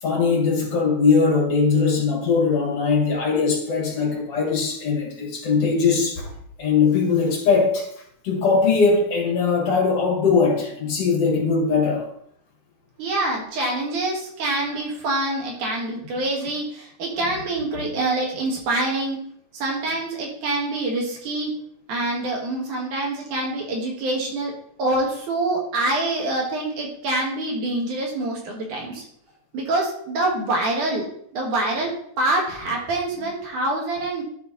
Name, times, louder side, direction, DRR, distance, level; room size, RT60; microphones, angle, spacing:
voice 1, 0.0-6.3 6.6-7.9 8.2-12.1 17.2-17.3, left 5 dB, 55° left, 0 dB, 2.5 m, -20 dB
voice 2, 13.0-19.2 19.5-21.5 21.9-24.5 24.8-29.0 29.5-31.1 31.3-34.2, right 2 dB, 90° right, -1 dB, 3.3 m, -25 dB
11.0 x 4.4 x 4.1 m, 0.67 s
omnidirectional pair, 3.4 m